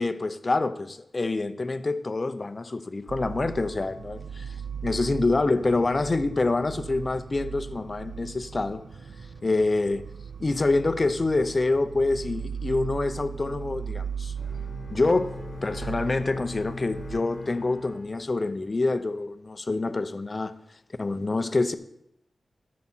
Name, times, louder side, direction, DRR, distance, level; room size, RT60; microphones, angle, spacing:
voice 1, 0.0-4.6 4.8-8.8 9.4-10.0 10.4-14.3 14.9-20.5 21.0-21.8, left 3 dB, 30° left, 0.6 m, -26 dB
sound 1, 3.1-17.2, right 7 dB, 90° right, 0.5 m, -38 dB
Bowed string instrument, 14.4-18.8, left 4 dB, 65° left, 1.2 m, -41 dB
Wind instrument woodwind instrument, 15.0-18.7, right 1 dB, 15° right, 1.0 m, -50 dB
14.5 x 7.4 x 4.4 m
wide cardioid pair, 130°, 0 cm